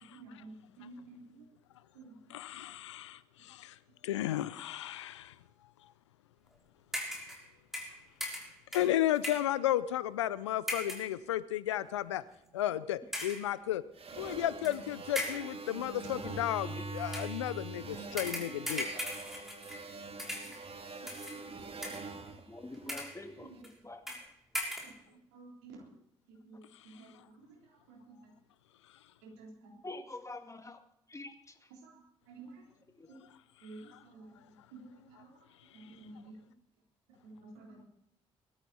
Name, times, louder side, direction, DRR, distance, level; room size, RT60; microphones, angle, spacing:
voice 1, 0.0-1.5 1.9-2.2 11.1-11.2 12.4-12.5 20.4-20.7 22.8-22.9 23.4-24.1 25.1-26.0 26.3-28.3 29.2-29.7 31.7-32.7 33.1-33.3 33.6-35.5 35.7-36.6 37.2-37.8, right 3 dB, 80° right, -1 dB, 3.7 m, -53 dB
voice 2, 2.3-3.7 4.0-5.3 8.7-12.2 12.5-13.8 14.2-18.9, left 12 dB, 85° left, 17 dB, 0.5 m, -33 dB
sound 1, 6.9-7.5 7.7-9.6 10.7-11.1 11.8-12.0 13.1-13.5 14.6-14.8 15.2-15.6 17.1-17.4 18.2-19.9 20.2-20.7 21.1-21.4 21.8-22.3 22.7-23.2 23.6-23.7 24.1-24.3 24.5-25.0, equal, 5° right, 6.1 m, -39 dB
sound 2, 14.0-23.4, right 3 dB, 40° right, 1.9 m, -44 dB
voice 3, 22.5-23.5 23.8-24.0 29.8-30.8 31.1-31.5 33.0-33.1, left 2 dB, 20° left, 6 dB, 2.3 m, -45 dB
20.5 x 13.0 x 4.3 m, 0.78 s
hypercardioid pair, 40°, 15 cm